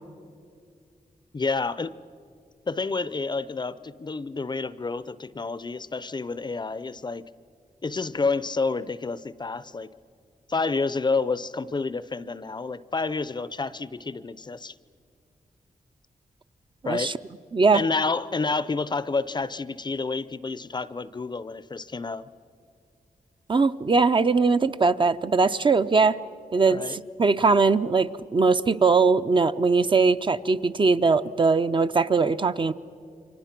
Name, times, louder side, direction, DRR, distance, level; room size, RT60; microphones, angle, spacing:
voice 1, 1.3-1.9 2.7-7.2 7.8-9.9 10.5-14.7 16.8-17.1 17.7-22.3 26.7-27.0, left 4 dB, 30° left, 16 dB, 0.5 m, -29 dB
voice 2, 23.5-26.2 26.5-32.7, right 4 dB, 35° right, 10 dB, 0.5 m, -21 dB
29.0 x 24.5 x 6.0 m, 2.3 s
wide cardioid pair, 115°, 14 cm